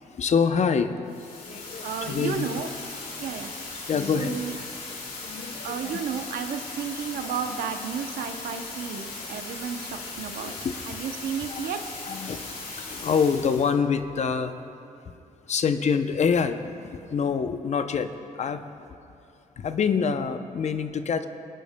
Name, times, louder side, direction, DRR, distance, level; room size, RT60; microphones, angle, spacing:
voice 1, 0.0-2.7 3.2-3.3 3.7-4.6 5.1-5.9 7.2-7.4 7.7-7.8 9.5-9.6 10.4-10.9 11.5-11.7 12.0-14.5 15.1-15.2 15.5-18.7 19.6-21.2, left 6 dB, 50° left, 9 dB, 0.6 m, -27 dB
sound 1, 1.1-13.7, left 3 dB, 80° left, 2.3 m, -38 dB
voice 2, 1.8-2.7 3.2-3.5 4.2-4.5 5.6-10.5 10.9-11.8, right 7 dB, 90° right, 7 dB, 0.7 m, -32 dB
21.5 x 10.0 x 2.2 m, 2.7 s
cardioid pair, 80°, 15 cm